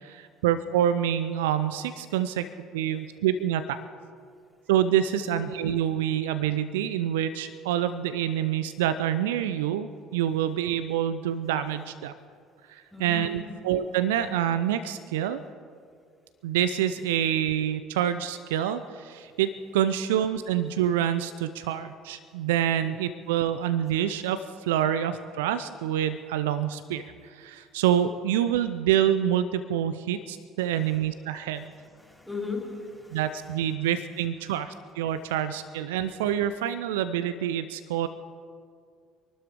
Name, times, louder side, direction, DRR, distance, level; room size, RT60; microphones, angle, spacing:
voice 1, 0.0-2.5 2.7-3.8 4.7-12.1 12.7-15.4 16.4-31.7 33.1-38.1, right 10 dB, 70° right, 12 dB, 0.5 m, -27 dB
voice 2, 12.9-13.6 22.8-22.9 31.5-33.2, left 4 dB, ahead, 0 dB, 4.0 m, -38 dB
25.5 x 12.5 x 3.7 m, 2.2 s
figure-of-eight pair, 55°, 0 cm